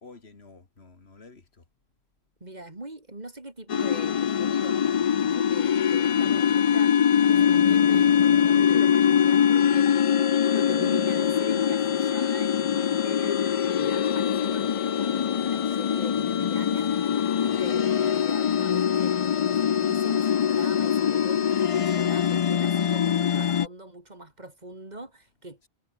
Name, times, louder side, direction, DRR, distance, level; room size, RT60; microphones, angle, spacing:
voice 1, 0.0-1.4 17.4-17.9, left 3 dB, 75° left, 2.6 m, -49 dB
voice 2, 2.4-7.0 7.3-10.2 10.5-16.9 17.6-25.6, right 2 dB, 40° right, 3.3 m, -42 dB
sound 1, 3.7-23.7, left 8 dB, 55° left, 0.3 m, -23 dB
omnidirectional pair, 1.1 m